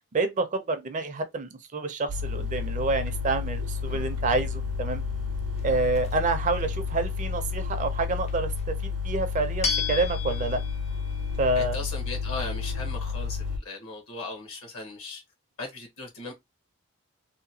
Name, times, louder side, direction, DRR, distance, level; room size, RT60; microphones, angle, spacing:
voice 1, 0.1-5.0 5.6-10.6 11.4-11.8, right 3 dB, 35° right, 0.5 m, -28 dB
sound 1, 2.1-13.6, left 5 dB, 90° right, 0.6 m, -31 dB
Musical instrument, 3.8-7.4, right 1 dB, 85° left, 0.6 m, -45 dB
sound 2, 4.0-13.5, left 6 dB, 30° left, 0.4 m, -38 dB
voice 2, 11.5-15.2 15.6-16.3, left 3 dB, 65° left, 1.0 m, -37 dB
2.8 x 2.2 x 2.7 m
head